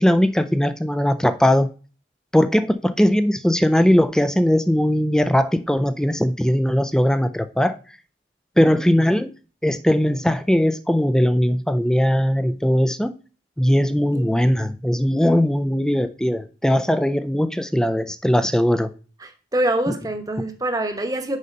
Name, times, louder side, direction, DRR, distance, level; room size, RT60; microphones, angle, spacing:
voice 1, 0.0-1.7 2.3-7.8 8.6-9.3 9.6-13.1 13.6-18.9, equal, 5° left, 0.4 m, -19 dB
voice 2, 19.2-21.4, right 1 dB, 20° right, 1.0 m, -25 dB
6.5 x 5.5 x 5.3 m
head